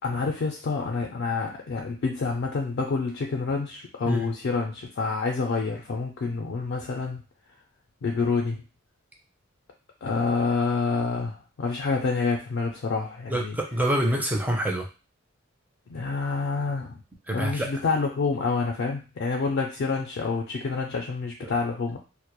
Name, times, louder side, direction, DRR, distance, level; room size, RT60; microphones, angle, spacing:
voice 1, 0.0-7.2 8.0-8.6 10.0-13.6 15.9-17.0 17.3-22.0, left 4 dB, 60° left, 0 dB, 0.4 m, -28 dB
voice 2, 13.3-14.9 17.3-17.7 21.4-21.5, right 1 dB, 10° right, 0 dB, 0.4 m, -26 dB
2.1 x 2.0 x 2.9 m, 0.32 s
head